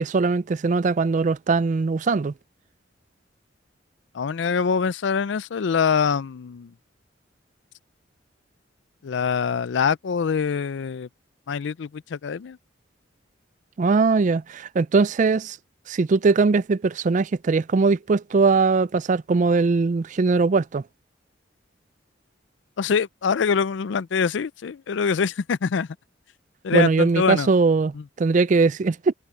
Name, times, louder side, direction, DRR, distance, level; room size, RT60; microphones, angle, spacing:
voice 1, 0.0-2.3 13.8-15.6 15.9-20.8 26.7-29.1, right 4 dB, 40° right, 0.4 m, -20 dB
voice 2, 4.1-6.7 9.0-11.1 11.5-12.6 22.8-25.9 26.6-27.5 27.9-28.0, left 6 dB, 70° left, 0.4 m, -24 dB
head